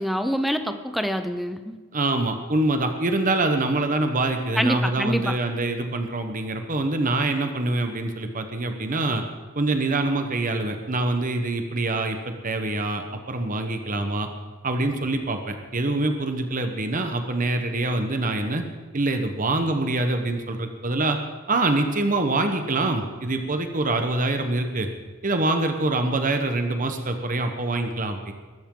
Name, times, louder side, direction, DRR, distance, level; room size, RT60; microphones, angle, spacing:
voice 1, 0.0-1.8 4.6-5.4, equal, ahead, 8 dB, 0.8 m, -26 dB
voice 2, 1.9-9.2 9.5-14.3 14.6-18.6 18.9-21.2 21.5-24.9 25.2-28.3, right 2 dB, 40° right, 6 dB, 1.1 m, -25 dB
21.5 x 12.5 x 3.9 m, 1.4 s
head